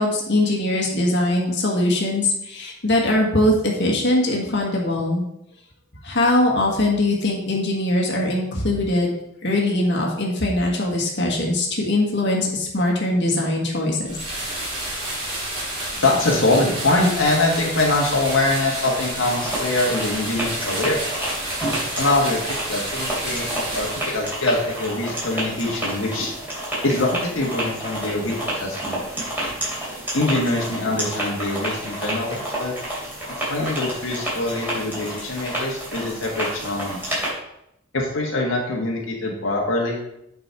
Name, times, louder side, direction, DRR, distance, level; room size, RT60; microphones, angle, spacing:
voice 1, 0.0-5.2 6.0-9.1 9.4-14.1, left 1 dB, 60° left, -1 dB, 1.7 m, -21 dB
sound 1, 14.0-24.4, right 1 dB, 30° right, 3.2 m, -30 dB
voice 2, 16.0-21.0 22.0-26.3 26.8-29.0 30.1-32.7 33.5-37.1 37.9-40.0, left 2 dB, 80° left, -2 dB, 1.6 m, -23 dB
sound 2, 19.2-37.3, right 1 dB, 10° right, 3.6 m, -30 dB
8.3 x 5.4 x 4.7 m, 0.79 s
head